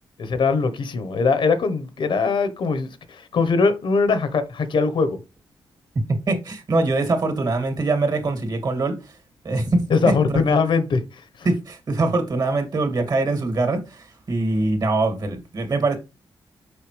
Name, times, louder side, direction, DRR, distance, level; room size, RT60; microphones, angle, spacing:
voice 1, 0.2-5.2 9.9-11.5, left 4 dB, 70° left, 1.1 m, -21 dB
voice 2, 6.1-9.0 9.4-10.6 11.4-16.0, right 2 dB, 50° right, 2.5 m, -23 dB
6.6 x 5.8 x 3.3 m
cardioid pair, 100°, 9 cm